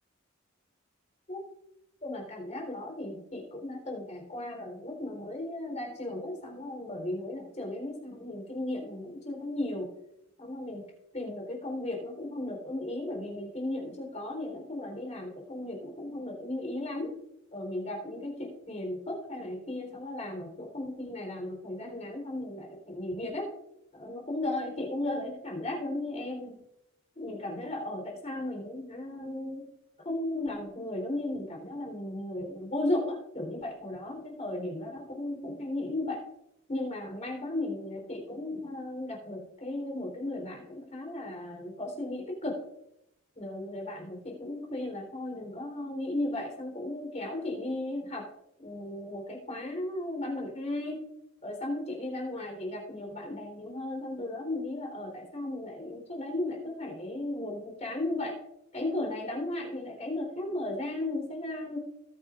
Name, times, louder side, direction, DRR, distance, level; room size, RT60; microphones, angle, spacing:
voice 1, 2.0-9.9 10.4-10.8 11.1-17.1 17.5-23.5 23.9-26.6 27.2-29.7 30.0-36.2 36.7-42.6 43.4-48.3 48.6-51.0 51.4-58.4 58.7-61.8, left 1 dB, 35° left, 1 dB, 3.8 m, -35 dB
20.5 x 8.9 x 2.5 m, 0.83 s
head